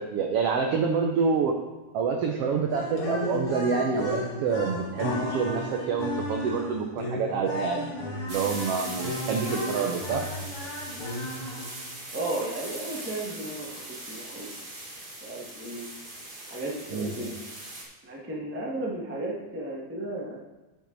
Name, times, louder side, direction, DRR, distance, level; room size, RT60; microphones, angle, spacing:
voice 1, 0.1-1.5 1.9-7.9 8.3-10.2 16.9-17.1, right 5 dB, 80° right, 3 dB, 1.3 m, -27 dB
sound 1, 2.7-11.9, left 1 dB, 50° left, 2.5 m, -34 dB
sound 2, 8.3-17.8, right 1 dB, 35° right, 0.8 m, -40 dB
voice 2, 12.1-14.5 15.1-15.8 16.5-17.4 18.0-20.4, right 1 dB, 10° right, -4 dB, 0.5 m, -34 dB
9.2 x 7.2 x 4.0 m, 1.1 s
omnidirectional pair, 3.6 m